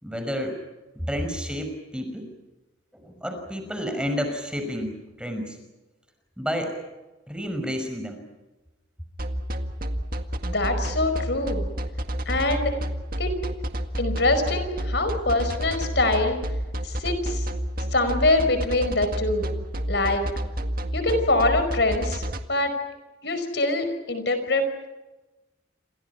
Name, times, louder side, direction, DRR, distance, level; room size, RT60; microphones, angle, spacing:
voice 1, 0.0-0.6 1.1-2.3 2.9-5.6 6.4-6.7 7.3-8.2, equal, 5° right, 5 dB, 5.6 m, -30 dB
sound 1, 9.2-22.4, equal, 45° right, 1.9 m, -29 dB
voice 2, 10.4-11.6 12.2-12.7 13.2-13.4 14.0-16.4 16.8-17.5 17.9-19.5 19.9-20.2 20.9-22.2 22.5-22.7 23.2-24.6, left 2 dB, 60° left, 9 dB, 5.1 m, -24 dB
28.5 x 27.0 x 5.9 m, 1.1 s
head